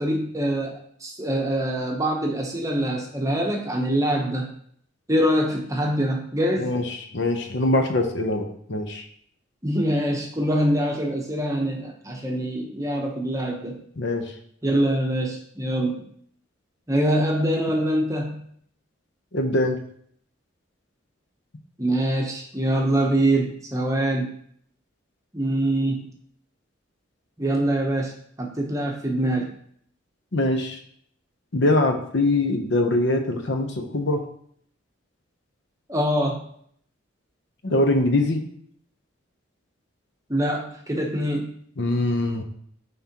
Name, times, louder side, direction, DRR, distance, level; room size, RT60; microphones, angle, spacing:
voice 1, 0.0-4.5 5.1-6.7 9.6-13.8 14.6-16.1 16.9-18.4 21.8-24.3 25.3-26.1 27.4-28.1 28.4-29.5 35.9-36.4 40.3-41.5, right 1 dB, 15° right, 1 dB, 0.8 m, -24 dB
voice 2, 6.6-9.0 14.0-14.3 19.3-19.8 30.3-30.8 31.5-34.2 37.6-38.4 41.8-42.4, left 2 dB, 60° left, 5 dB, 0.7 m, -23 dB
9.4 x 3.6 x 2.9 m, 0.64 s
head